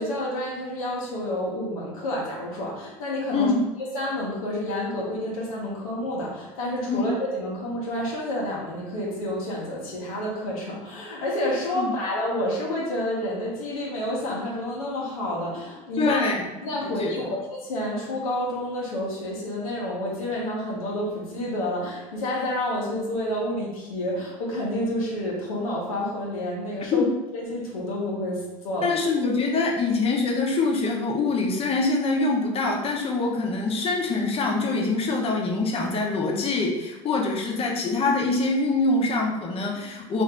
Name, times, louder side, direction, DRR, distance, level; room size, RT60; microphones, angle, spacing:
voice 1, 0.0-3.5 3.9-16.3 16.6-27.1 27.3-29.0 29.4-29.5, left 1 dB, 85° left, -3 dB, 0.8 m, -29 dB
voice 2, 16.0-16.5 16.8-17.2 26.9-27.1 28.8-40.2, left 3 dB, 35° left, 0 dB, 0.8 m, -24 dB
2.6 x 2.5 x 3.3 m, 1.1 s
hypercardioid pair, 90°, 18 cm